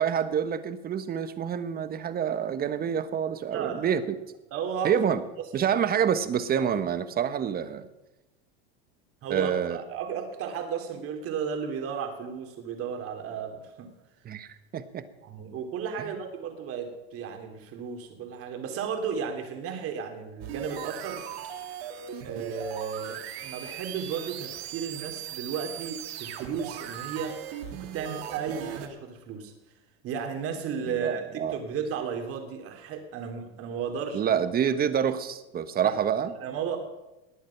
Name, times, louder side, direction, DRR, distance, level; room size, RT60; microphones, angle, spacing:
voice 1, 0.0-4.2 4.8-5.2 5.5-7.9 9.3-9.8 14.2-15.0 16.0-16.1 30.9-31.6 34.1-36.3, right 8 dB, 30° right, 12 dB, 1.2 m, -27 dB
voice 2, 3.5-3.9 4.5-5.0 9.2-13.9 15.2-21.2 22.2-27.3 27.7-29.5 30.0-34.2 35.8-36.0 36.3-36.8, right 7 dB, 45° right, 5 dB, 3.1 m, -34 dB
sound 1, 20.4-28.9, right 10 dB, 80° right, 2.3 m, -39 dB
19.5 x 8.7 x 5.9 m, 0.99 s
supercardioid pair, 115°, 31 cm